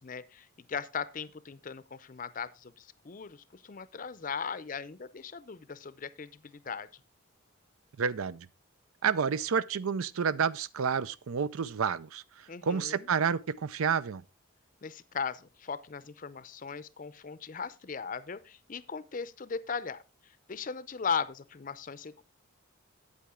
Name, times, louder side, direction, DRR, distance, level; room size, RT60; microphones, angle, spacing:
voice 1, 0.0-6.9 12.5-13.1 14.8-20.0 20.5-22.2, left 6 dB, 40° left, 0.5 m, -38 dB
voice 2, 8.0-8.5 9.0-14.2, right 6 dB, 90° right, 0.5 m, -30 dB
8.6 x 8.5 x 3.6 m
head